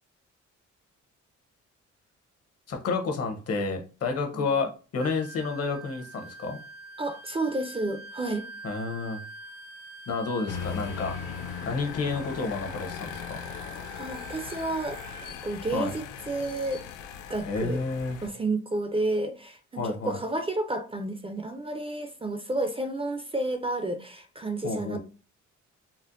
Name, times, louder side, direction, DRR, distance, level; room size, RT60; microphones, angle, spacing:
voice 1, 2.7-6.6 8.6-9.2 10.1-11.2 11.7-13.4 15.7-15.9 17.4-18.2 19.8-20.2 24.6-25.0, left 4 dB, 55° left, 0.9 m, -30 dB
Wind instrument woodwind instrument, 5.0-15.4, right 4 dB, 65° right, 0.7 m, -45 dB
voice 2, 7.0-8.4 14.0-15.0 15.4-16.8 17.3-17.8 18.2-25.0, right 2 dB, 20° right, 0.4 m, -31 dB
sound 1, 10.5-18.3, left 8 dB, 85° left, 0.5 m, -39 dB
4.3 x 2.1 x 2.5 m
cardioid pair, 90°, 30 cm